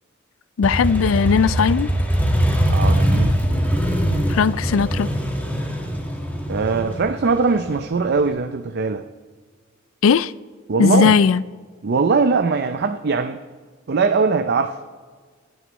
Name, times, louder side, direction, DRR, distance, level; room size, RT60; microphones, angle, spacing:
voice 1, 0.6-1.9 4.3-5.1 10.0-10.3 10.8-11.4, left 6 dB, 80° left, 0.4 m, -17 dB
Motorcycle, 0.6-8.3, equal, 10° left, 1.6 m, -22 dB
voice 2, 2.7-3.4 4.1-4.9 6.5-9.0 10.7-11.2 11.8-13.4 13.9-14.8, right 4 dB, 55° right, 0.5 m, -21 dB
26.0 x 9.4 x 3.1 m
head